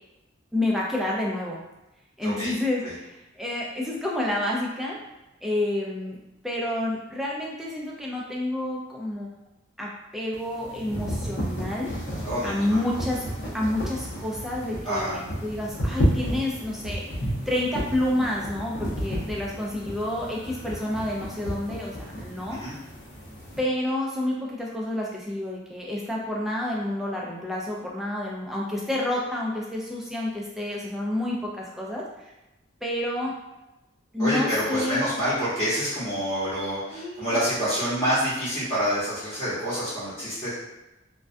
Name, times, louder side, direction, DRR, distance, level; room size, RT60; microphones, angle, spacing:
voice 1, 0.5-1.6 2.2-5.0 5.4-6.2 6.4-9.3 9.8-11.9 12.4-13.2 13.5-17.0 17.5-22.6 23.6-32.3 32.8-33.3 34.1-35.1 36.9-37.4, left 1 dB, ahead, -4 dB, 0.3 m, -29 dB
voice 2, 2.2-2.5 2.8-2.9 12.2-12.8 14.8-15.1 22.5-22.7 34.2-40.5, equal, 15° left, -14 dB, 0.9 m, -27 dB
sound 1, 10.3-23.6, equal, 60° left, 0.7 m, -32 dB
2.3 x 2.1 x 2.5 m, 0.97 s
head